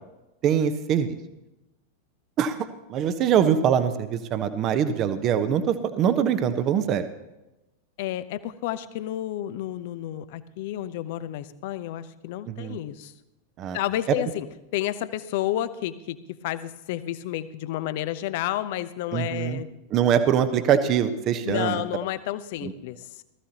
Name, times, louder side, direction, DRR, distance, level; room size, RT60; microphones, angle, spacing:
voice 1, 0.4-1.2 2.4-7.1 12.5-12.8 13.6-13.8 14.1-14.2 19.1-19.6 19.9-21.8 22.6-22.7, right 8 dB, 35° right, 10 dB, 1.0 m, -23 dB
voice 2, 8.0-13.1 13.7-14.5 14.7-19.7 21.4-23.2, left 13 dB, 50° left, 13 dB, 0.8 m, -31 dB
19.0 x 14.0 x 3.0 m, 0.97 s
figure-of-eight pair, 90°, 0 cm